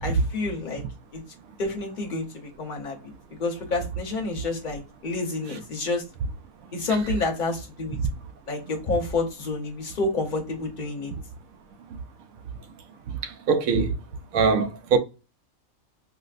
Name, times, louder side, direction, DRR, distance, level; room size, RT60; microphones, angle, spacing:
voice 1, 0.0-0.8 1.1-1.2 1.6-3.0 3.4-6.1 6.7-8.0 8.5-11.1, left 3 dB, 40° left, 0.9 m, -29 dB
voice 2, 13.1-14.0 14.3-15.0, right 5 dB, 80° right, 1.0 m, -22 dB
4.9 x 2.0 x 2.4 m
omnidirectional pair, 1.4 m